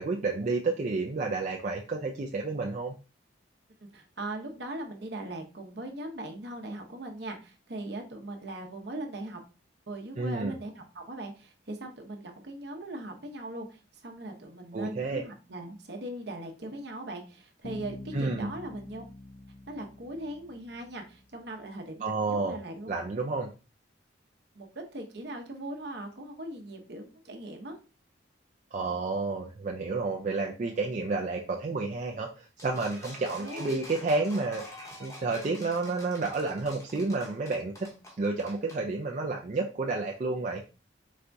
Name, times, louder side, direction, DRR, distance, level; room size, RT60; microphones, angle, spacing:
voice 1, 0.0-2.9 10.2-10.5 14.7-15.2 18.1-18.5 22.0-22.6 22.9-23.5 28.7-34.6 35.0-37.9 38.2-40.6, right 3 dB, 40° right, 0 dB, 0.4 m, -30 dB
voice 2, 3.8-9.4 9.9-19.0 19.7-22.9 24.5-27.8 33.3-33.7, right 1 dB, 60° right, 3 dB, 0.8 m, -40 dB
Bass guitar, 17.6-21.4, left 2 dB, 50° left, 0.5 m, -46 dB
sound 1, 32.6-38.8, left 1 dB, 15° left, 0.8 m, -47 dB
4.2 x 3.4 x 2.6 m, 0.33 s
head